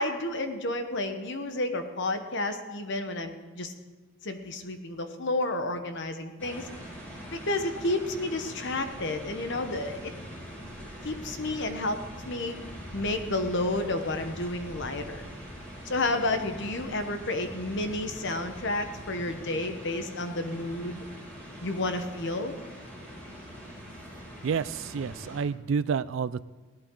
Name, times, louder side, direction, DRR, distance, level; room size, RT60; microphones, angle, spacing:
voice 1, 0.0-3.7 4.2-6.7 7.3-10.1 11.0-12.0 12.2-12.6 12.9-15.2 15.8-21.0 21.6-22.5, left 2 dB, 55° left, 8 dB, 1.0 m, -31 dB
sound 1, 6.4-25.4, equal, 5° left, 2.9 m, -43 dB
voice 2, 24.4-26.4, right 6 dB, 60° right, 18 dB, 0.3 m, -29 dB
17.0 x 11.0 x 3.8 m, 1.3 s
head